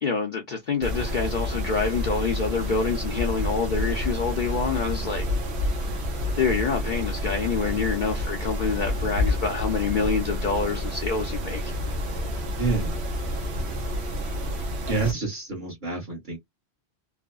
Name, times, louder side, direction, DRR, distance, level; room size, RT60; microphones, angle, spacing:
voice 1, 0.0-5.3 6.4-11.7, left 5 dB, 50° left, 0.7 m, -27 dB
Mechanisms, 0.8-15.1, left 1 dB, 75° right, 1.0 m, -29 dB
voice 2, 12.6-13.0 14.9-16.4, right 4 dB, 45° right, 1.4 m, -28 dB
3.2 x 2.1 x 2.3 m
omnidirectional pair, 1.1 m